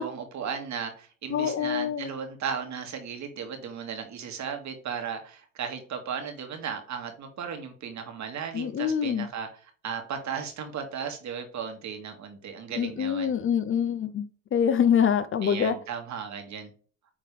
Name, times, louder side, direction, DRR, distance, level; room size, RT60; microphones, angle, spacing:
voice 1, 0.0-13.3 15.4-16.7, right 7 dB, 45° right, 2.1 m, -36 dB
voice 2, 1.3-2.1 8.5-9.3 12.8-15.7, left 8 dB, 35° left, 0.6 m, -25 dB
8.9 x 3.9 x 3.3 m
hypercardioid pair, 80°, 39 cm